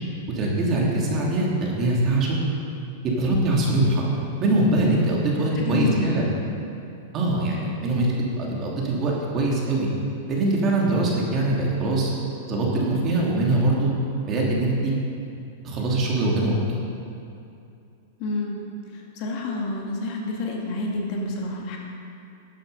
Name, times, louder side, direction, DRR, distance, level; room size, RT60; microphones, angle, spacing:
voice 1, 0.3-2.4 3.2-4.1 4.4-6.3 7.1-9.9 10.3-12.1 12.5-13.9 14.3-14.9 15.6-16.5, right 2 dB, 35° right, -3 dB, 2.6 m, -22 dB
voice 2, 5.6-6.1 18.2-18.6 18.9-21.8, left 2 dB, 50° left, -1 dB, 2.2 m, -28 dB
12.5 x 7.9 x 5.4 m, 2.6 s
hypercardioid pair, 130°, 0 cm